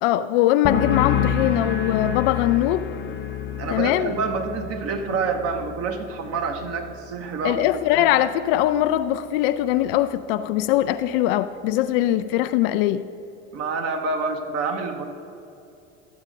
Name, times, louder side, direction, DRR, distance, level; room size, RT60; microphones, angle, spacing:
voice 1, 0.0-2.9 3.7-4.1 7.4-13.1, left 13 dB, 50° left, 0.4 m, -21 dB
sound 1, 0.6-8.1 8.4-8.9, left 7 dB, 30° left, 0.9 m, -29 dB
voice 2, 3.6-8.1 13.5-15.1, right 4 dB, 40° right, 1.2 m, -27 dB
12.5 x 8.0 x 3.7 m
figure-of-eight pair, 75°, 36 cm